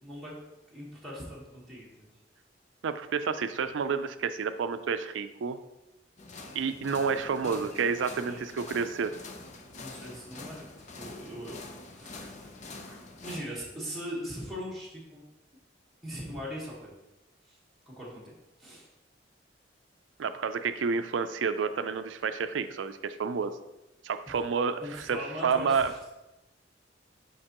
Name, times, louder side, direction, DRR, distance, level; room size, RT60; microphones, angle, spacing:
voice 1, 0.0-0.3 0.7-2.1 7.4-7.6 7.9-8.4 9.8-10.7 11.0-11.6 11.9-12.5 12.9-15.2 16.0-16.9 17.5-17.6 17.9-18.3 18.6-18.9 24.3-24.4 24.8-26.0, equal, ahead, -7 dB, 1.4 m, -40 dB
voice 2, 2.8-5.6 6.5-9.1 20.2-23.6 24.0-25.2 25.4-25.9, right 5 dB, 85° right, 10 dB, 0.4 m, -29 dB
sound 1, 6.2-13.4, left 3 dB, 40° left, 0.6 m, -45 dB
6.5 x 5.3 x 2.9 m, 0.97 s
head